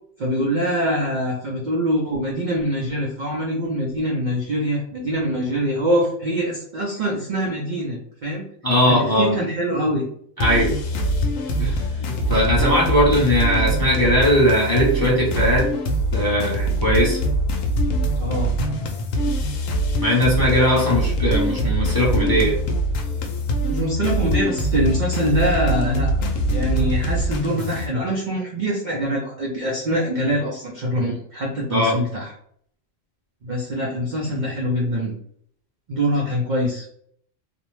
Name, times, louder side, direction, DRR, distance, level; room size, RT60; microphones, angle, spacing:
voice 1, 0.2-8.4 8.9-10.1 18.2-18.5 23.7-32.3 33.4-35.1 35.9-36.9, equal, 60° right, -2 dB, 0.5 m, -24 dB
voice 2, 8.6-9.3 10.4-10.7 11.6-15.7 16.1-17.2 20.0-22.6 31.7-32.0, equal, 25° left, -6 dB, 0.6 m, -19 dB
sound 1, 10.4-27.9, right 1 dB, 85° left, 1.0 m, -23 dB
2.5 x 2.0 x 3.0 m, 0.65 s
omnidirectional pair, 1.3 m